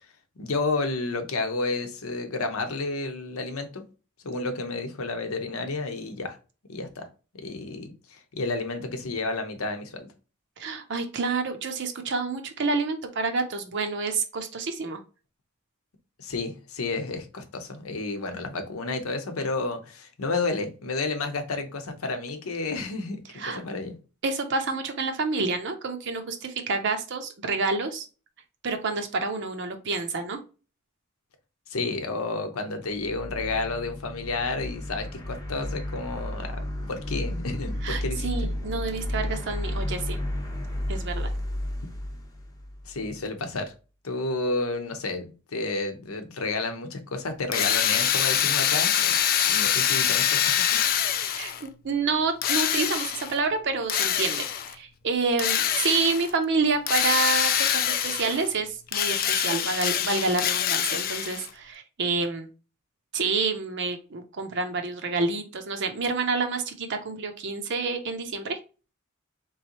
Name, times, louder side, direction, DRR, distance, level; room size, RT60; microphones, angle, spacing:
voice 1, 0.4-3.8 4.2-6.4 6.7-7.1 7.4-10.1 16.2-23.9 31.7-36.6 36.9-38.3 42.8-43.7 44.0-45.3 45.5-49.2 49.5-50.8, left 3 dB, 80° left, 0.8 m, -31 dB
voice 2, 10.6-15.0 23.4-23.6 24.2-28.0 28.6-30.4 37.8-40.2 40.9-41.3 51.3-62.5 63.1-68.6, right 4 dB, 55° right, 0.6 m, -28 dB
sound 1, 32.9-43.1, left 1 dB, 15° left, 0.8 m, -33 dB
Drill, 47.5-51.7 52.4-53.4 53.9-54.7 55.4-56.3 56.9-58.5 58.9-61.5, left 10 dB, 45° left, 0.4 m, -25 dB
3.7 x 3.1 x 2.9 m
head